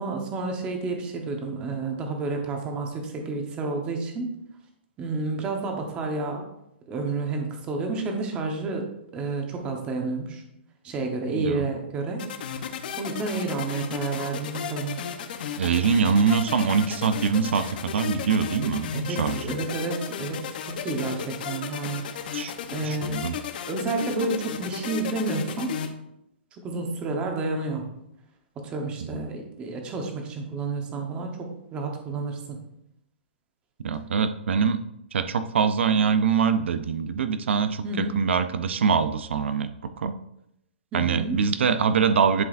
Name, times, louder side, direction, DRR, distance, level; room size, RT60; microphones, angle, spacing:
voice 1, 0.0-4.3 5.0-6.4 6.9-10.4 10.8-12.2 13.0-15.0 18.9-22.0 22.7-23.2 23.7-25.8 26.5-27.8 28.6-32.6 37.8-38.1 40.9-41.4, right 3 dB, 15° right, 2 dB, 1.1 m, -30 dB
voice 2, 11.3-11.7 15.6-19.4 22.3-22.5 22.9-23.3 29.1-29.2 33.8-34.8 35.1-39.7 40.0-40.1 40.9-42.4, right 6 dB, 85° right, 11 dB, 0.5 m, -24 dB
sound 1, 12.2-25.9, left 7 dB, 50° left, 0.8 m, -34 dB
11.0 x 4.7 x 2.5 m, 0.81 s
hypercardioid pair, 165°, 6 cm